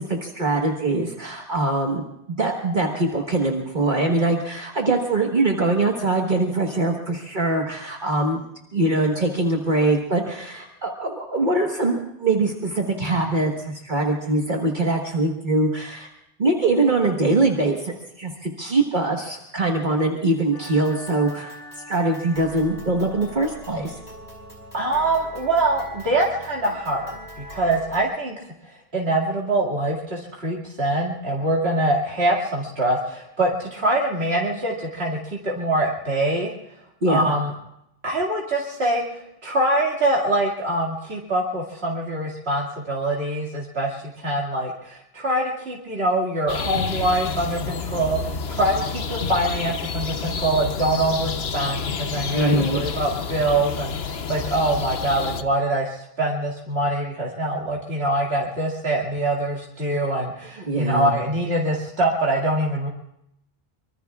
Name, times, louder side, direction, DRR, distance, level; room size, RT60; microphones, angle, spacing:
voice 1, 0.0-8.4 8.7-16.1 16.4-21.6 21.9-23.9 37.0-37.3 52.3-52.8 60.7-61.1, right 2 dB, 50° right, 0 dB, 1.6 m, -23 dB
sound 1, 20.5-28.0, equal, 45° left, 4.8 m, -41 dB
voice 2, 24.7-36.5 37.1-37.5 38.0-62.9, right 1 dB, 85° right, -3 dB, 2.6 m, -24 dB
sound 2, 46.5-55.4, left 5 dB, 80° left, 1.1 m, -29 dB
25.0 x 24.0 x 2.4 m, 0.80 s
omnidirectional pair, 1.0 m